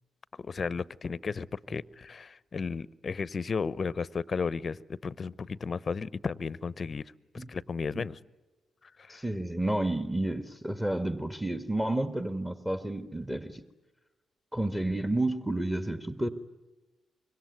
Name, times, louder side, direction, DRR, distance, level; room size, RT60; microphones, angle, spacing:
voice 1, 0.4-8.2 8.8-9.2, left 5 dB, 45° left, 20 dB, 0.8 m, -34 dB
voice 2, 9.1-13.6 14.5-16.3, right 1 dB, 10° right, 9 dB, 1.6 m, -31 dB
25.5 x 23.0 x 9.4 m, 1.2 s
hypercardioid pair, 45°, 0 cm